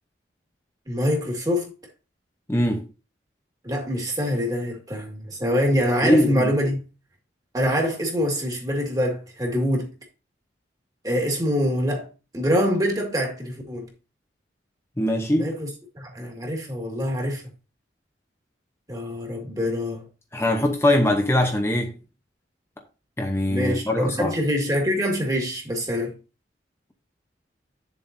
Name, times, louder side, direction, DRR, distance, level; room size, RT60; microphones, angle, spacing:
voice 1, 0.9-1.7 3.6-6.8 7.5-9.9 11.0-12.1 12.3-13.9 15.4-15.7 16.0-17.4 18.9-20.1 23.5-26.1, equal, 20° right, 2.0 m, -25 dB
voice 2, 2.5-2.8 6.0-6.5 15.0-15.5 20.3-21.9 23.2-24.3, left 1 dB, 15° left, 0.8 m, -21 dB
9.2 x 7.2 x 2.7 m
head